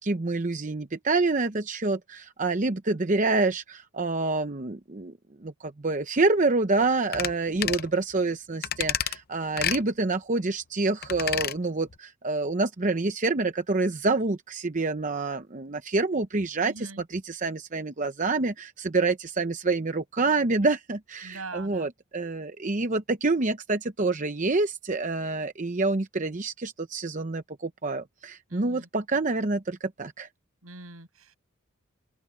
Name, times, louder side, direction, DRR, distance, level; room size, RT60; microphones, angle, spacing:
voice 1, 0.0-5.1 5.4-30.3, right 3 dB, 35° right, 0.8 m, -27 dB
sound 1, 7.1-7.3 7.6-7.9 8.6-9.2 9.6-9.8 11.0-11.6 11.9-12.0, left 10 dB, 45° left, 0.7 m, -29 dB
voice 2, 16.6-17.0 21.2-21.9 28.5-28.9 30.6-31.4, right 3 dB, 80° right, 6.5 m, -42 dB
open air
head